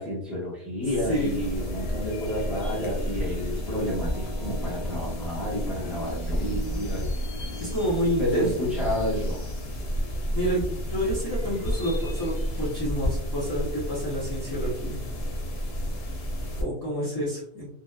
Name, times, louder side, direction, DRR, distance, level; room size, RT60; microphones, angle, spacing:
voice 1, 0.0-7.1 8.2-9.4, left 1 dB, ahead, -8 dB, 1.0 m, -30 dB
sound 1, 0.8-16.6, equal, 75° left, 0.9 m, -31 dB
sound 2, 1.0-12.0, equal, 30° right, 0.5 m, -42 dB
voice 2, 1.1-1.4 7.6-8.8 10.3-15.0 16.6-17.7, equal, 25° left, -8 dB, 0.6 m, -29 dB
2.8 x 2.1 x 2.3 m, 0.66 s
omnidirectional pair, 1.1 m